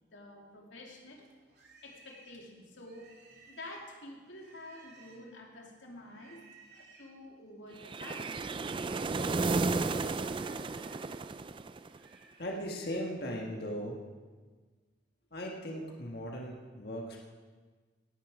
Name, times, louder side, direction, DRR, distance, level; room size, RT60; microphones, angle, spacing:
voice 1, 0.1-1.2 1.8-3.1 3.5-6.4 6.7-8.5, left 1 dB, 85° left, 0 dB, 2.7 m, -49 dB
Livestock farm animals working animals, 1.2-5.4 6.0-7.1 7.9-9.1 9.4-13.1, right 4 dB, 60° right, 3.0 m, -60 dB
sound 1, 7.8-12.1, right 3 dB, 25° right, 0.3 m, -33 dB
voice 2, 12.4-14.0 15.3-17.3, equal, 55° left, 0 dB, 1.7 m, -38 dB
18.5 x 10.0 x 4.9 m, 1.4 s
head